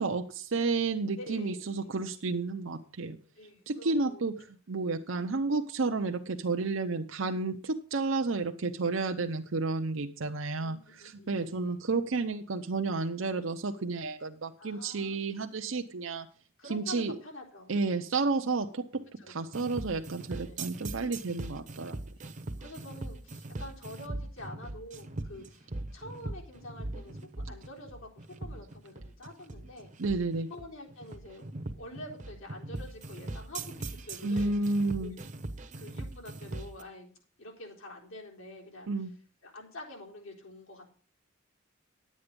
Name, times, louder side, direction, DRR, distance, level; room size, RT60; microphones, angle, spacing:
voice 1, 0.0-3.2 3.7-4.3 4.7-16.3 16.7-17.2 17.7-18.9 19.3-22.0 30.0-30.5 34.2-35.2 38.9-39.1, right 3 dB, 70° right, 4 dB, 0.7 m, -31 dB
voice 2, 1.2-1.9 3.4-4.2 5.9-6.0 10.6-11.7 14.6-15.2 16.6-18.1 19.2-19.5 20.4-20.7 22.6-31.5 31.7-35.1 35.8-37.1 37.4-39.1 39.4-40.9, left 1 dB, 80° left, -1 dB, 3.9 m, -47 dB
sound 1, 19.5-36.8, right 2 dB, 40° right, 0.9 m, -40 dB
11.0 x 8.5 x 5.2 m, 0.41 s
head